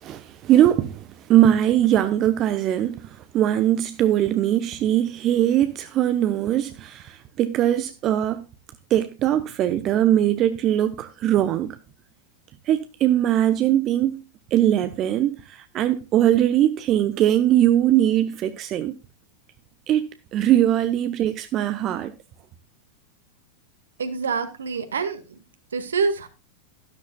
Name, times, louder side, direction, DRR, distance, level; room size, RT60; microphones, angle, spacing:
voice 1, 0.0-8.4 8.9-11.8 12.7-14.2 14.5-18.9 19.9-22.1, right 12 dB, 35° right, 0.9 m, -21 dB
voice 2, 24.0-25.4 25.7-26.3, right 5 dB, 70° right, 1.9 m, -26 dB
13.0 x 12.5 x 2.3 m
figure-of-eight pair, 90°, 0 cm